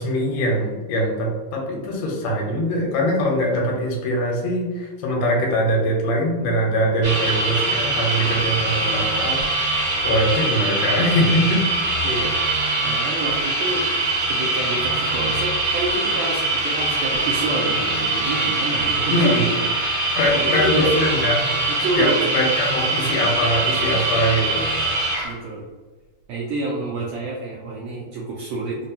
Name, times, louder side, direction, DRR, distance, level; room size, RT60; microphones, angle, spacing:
voice 1, 0.0-11.6 19.1-19.4 20.2-21.4 22.0-24.7, equal, 85° left, -1 dB, 2.3 m, -22 dB
sound 1, 7.0-25.3, right 2 dB, 55° right, 2.0 m, -23 dB
voice 2, 12.8-13.9 14.3-19.9 20.3-20.9 21.7-22.4 25.2-25.6 26.3-28.9, right 2 dB, 80° right, -4 dB, 1.6 m, -28 dB
5.1 x 2.2 x 2.7 m, 1.3 s
omnidirectional pair, 3.7 m